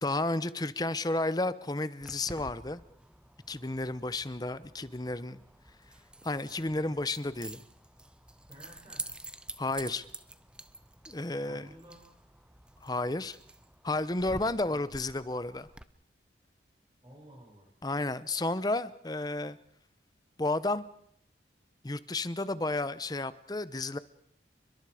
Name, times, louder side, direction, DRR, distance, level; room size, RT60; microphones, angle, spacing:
voice 1, 0.0-2.8 3.5-5.4 6.2-7.6 9.6-10.0 11.1-11.7 12.8-13.4 13.8-15.7 17.8-19.6 20.4-20.9 21.8-24.0, left 2 dB, 20° left, 15 dB, 0.8 m, -32 dB
Keys jangling, 2.0-15.8, right 1 dB, 5° right, 0.8 m, -48 dB
voice 2, 8.5-9.0 11.4-12.1 14.7-14.9 17.0-17.7, equal, 25° right, -4 dB, 6.9 m, -52 dB
29.5 x 22.5 x 5.0 m, 0.68 s
head